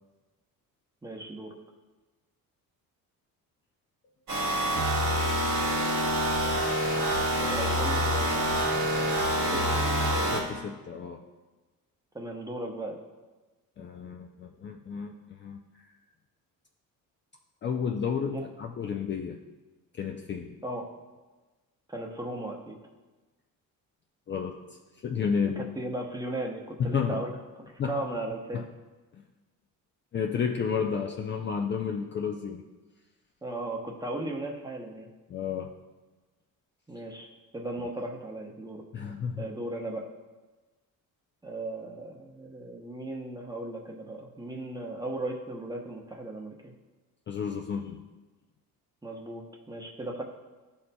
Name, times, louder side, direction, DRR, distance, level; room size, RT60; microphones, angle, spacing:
voice 1, 1.0-1.5 7.4-8.7 9.5-9.9 12.1-13.0 18.3-18.4 20.6-20.9 21.9-22.8 25.6-27.4 27.7-28.6 33.4-35.1 36.9-37.3 37.5-38.8 39.4-40.1 41.4-46.7 49.0-50.2, right 2 dB, 10° right, 1 dB, 0.8 m, -36 dB
sound 1, 4.3-10.4, equal, 85° right, 2.0 m, -26 dB
voice 2, 10.3-11.3 13.8-15.6 17.6-19.4 20.0-20.6 24.3-25.6 26.8-27.2 27.8-28.0 28.5-28.6 29.1-29.2 30.1-32.6 35.3-35.8 38.9-39.5 47.3-48.0, left 6 dB, 35° left, 1 dB, 0.4 m, -32 dB
12.5 x 4.2 x 2.2 m, 1.2 s
cardioid pair, 130°, 35 cm